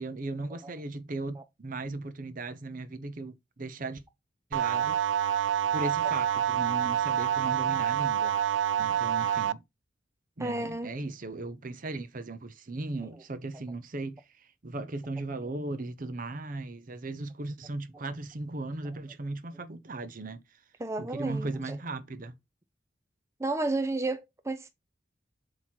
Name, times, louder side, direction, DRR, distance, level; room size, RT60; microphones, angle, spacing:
voice 1, 0.0-4.0 4.5-4.9 5.7-8.4 8.8-9.6 10.4-20.4 21.0-22.3, right 2 dB, 50° right, 0.7 m, -37 dB
sound 1, 4.5-9.5, right 9 dB, 80° right, 0.4 m, -27 dB
voice 2, 10.4-10.9 20.8-21.8 23.4-24.7, right 2 dB, 15° right, 0.5 m, -32 dB
7.6 x 3.0 x 4.5 m
head